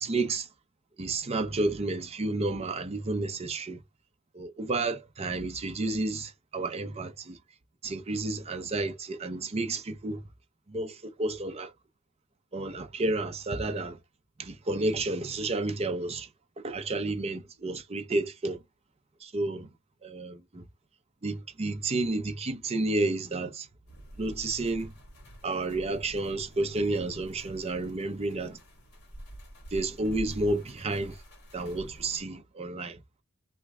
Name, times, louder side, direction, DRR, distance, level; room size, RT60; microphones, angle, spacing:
voice 1, 0.0-0.5 1.0-3.8 4.3-7.4 7.8-10.2 10.7-11.7 12.5-14.0 14.4-16.3 16.6-18.6 19.2-19.7 20.0-20.6 21.2-23.7 24.2-24.9 25.4-28.6 29.7-31.2 31.5-33.0, right 2 dB, 30° right, 0.5 m, -31 dB
sound 1, 23.9-32.2, right 1 dB, 55° left, 1.8 m, -47 dB
3.0 x 2.3 x 3.5 m
head